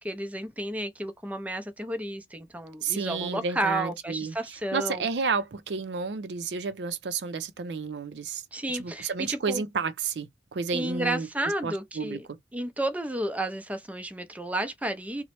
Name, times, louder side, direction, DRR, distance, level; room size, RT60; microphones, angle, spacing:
voice 1, 0.0-5.1 8.5-9.6 10.7-12.3 12.5-15.2, right 1 dB, 10° right, 0.4 m, -32 dB
voice 2, 2.8-4.4 4.7-8.4 8.7-11.3 11.6-12.2, right 5 dB, 70° right, 0.5 m, -31 dB
3.0 x 2.0 x 2.9 m
head